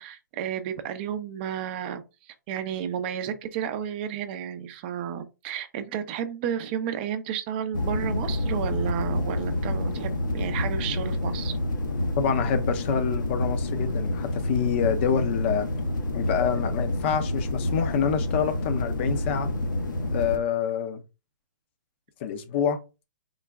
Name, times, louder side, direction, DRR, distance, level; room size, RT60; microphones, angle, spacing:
voice 1, 0.0-11.6, right 9 dB, 30° right, 0.5 m, -32 dB
sound 1, 7.7-20.4, left 1 dB, 75° left, 0.9 m, -28 dB
voice 2, 12.2-15.7 16.1-19.5 20.1-21.0 22.2-22.8, left 7 dB, 35° left, 0.6 m, -27 dB
3.8 x 2.2 x 3.3 m
hypercardioid pair, 135°, 10 cm